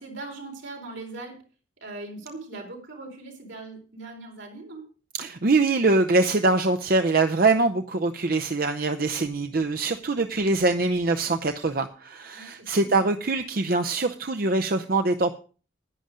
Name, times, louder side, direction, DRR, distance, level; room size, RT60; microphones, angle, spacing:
voice 1, 0.0-1.4 1.8-4.9 12.3-13.0, right 2 dB, 75° right, 1 dB, 4.3 m, -40 dB
voice 2, 5.2-15.4, right 3 dB, 45° right, 6 dB, 0.6 m, -23 dB
11.0 x 10.0 x 5.1 m, 0.37 s
head